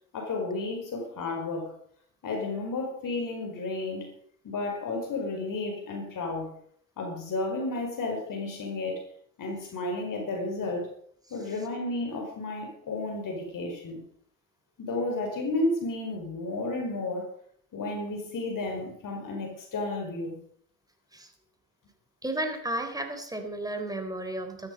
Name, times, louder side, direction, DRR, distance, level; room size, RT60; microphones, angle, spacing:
voice 1, 0.1-1.7 2.2-4.1 4.4-6.5 7.0-9.0 9.4-10.9 11.3-14.0 14.8-17.3 17.7-20.4, left 2 dB, 45° left, 2 dB, 5.1 m, -32 dB
voice 2, 22.2-24.7, right 1 dB, 10° right, 5 dB, 3.9 m, -33 dB
14.0 x 13.5 x 5.3 m, 0.63 s
hypercardioid pair, 70°, 44 cm